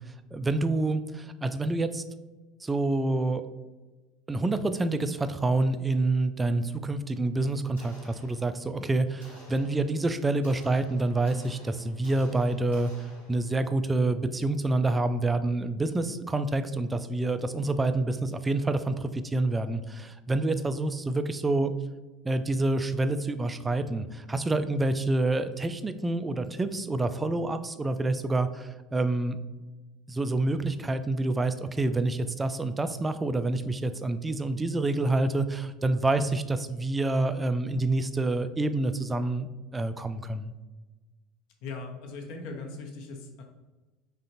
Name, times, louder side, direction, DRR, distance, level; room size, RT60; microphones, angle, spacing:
voice 1, 0.3-2.0 2.6-3.4 4.3-21.7 22.2-29.4 30.1-39.5 39.7-40.5, right 2 dB, 15° right, 10 dB, 0.3 m, -27 dB
sound 1, 7.7-8.8 9.2-13.7, equal, 85° left, 1.3 m, -53 dB
voice 2, 41.6-43.4, left 3 dB, 55° left, 2 dB, 0.7 m, -39 dB
3.8 x 3.3 x 2.7 m, 1.2 s
figure-of-eight pair, 70°, 0 cm